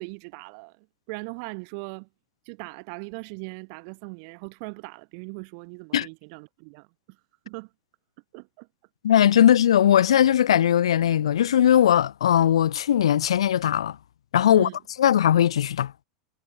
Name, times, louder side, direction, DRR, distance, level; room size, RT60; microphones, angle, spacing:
voice 1, 0.0-2.1 2.4-7.2 7.4-7.7 8.3-8.7 14.5-14.8, right 37 dB, 60° right, 2.9 m, -39 dB
voice 2, 9.0-14.0 14.3-14.7 15.0-15.9, left 10 dB, 85° left, 0.4 m, -19 dB
hypercardioid pair, 95°, 3 cm